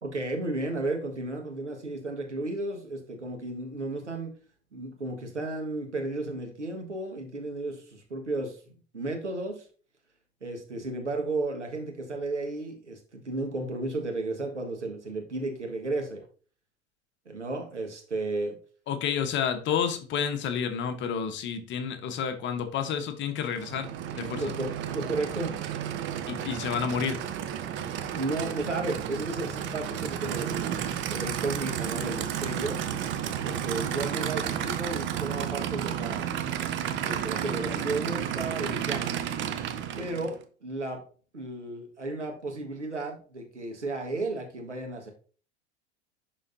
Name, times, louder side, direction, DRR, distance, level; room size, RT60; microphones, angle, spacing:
voice 1, 0.0-4.3 4.7-8.6 8.9-9.6 10.4-16.2 17.2-18.6 24.3-25.5 28.1-32.8 33.4-36.3 36.9-39.0 40.0-40.3 40.6-41.0 41.3-45.1, right 2 dB, 85° right, 1.6 m, -33 dB
voice 2, 18.9-23.9 24.1-24.5 26.3-27.3, left 7 dB, 35° left, 1.1 m, -30 dB
Aircraft / Idling, 23.5-40.4, right 9 dB, 35° right, 0.8 m, -32 dB
11.0 x 4.0 x 2.6 m
figure-of-eight pair, 85°, 35 cm